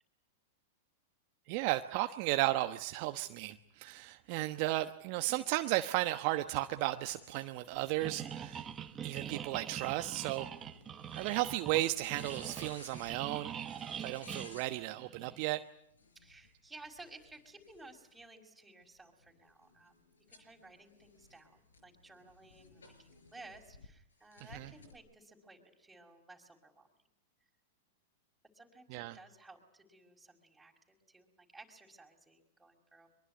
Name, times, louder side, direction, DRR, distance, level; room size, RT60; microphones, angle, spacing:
voice 1, 1.5-8.6 9.0-10.5 11.1-13.5 14.0-15.6 24.5-24.7 28.9-29.1, right 17 dB, 50° right, 8 dB, 1.1 m, -34 dB
sound 1, 6.7-14.7 15.9-18.2 18.8-23.9 24.3-24.9, left 3 dB, 85° left, 5.1 m, -58 dB
sound 2, 8.0-15.4, right 9 dB, 25° right, 1.5 m, -44 dB
voice 2, 16.1-26.9 28.5-33.1, right 2 dB, 5° right, 1 dB, 5.7 m, -56 dB
24.0 x 22.5 x 9.6 m, 0.74 s
hypercardioid pair, 105°, 0 cm